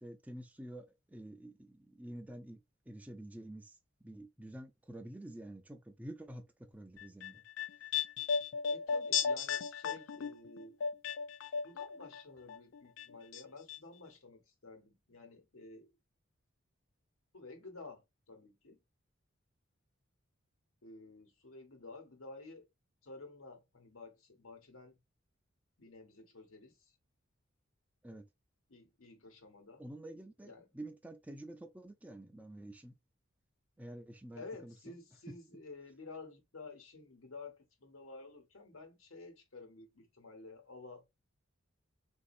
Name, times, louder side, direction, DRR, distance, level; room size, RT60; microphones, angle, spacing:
voice 1, 0.0-2.6 2.9-3.8 4.0-7.4 28.0-28.3 29.8-32.9 33.8-35.0, right 1 dB, 5° right, 0.4 m, -49 dB
sound 1, 7.0-12.2 12.5-13.4 13.7-13.8, left 6 dB, 65° left, 0.4 m, -35 dB
voice 2, 8.7-10.8 11.6-16.0 17.3-18.8 20.8-22.6 23.0-25.0 25.8-26.9 28.7-29.9 30.4-30.7 34.3-41.1, left 3 dB, 85° left, 1.2 m, -52 dB
4.1 x 2.7 x 2.5 m
head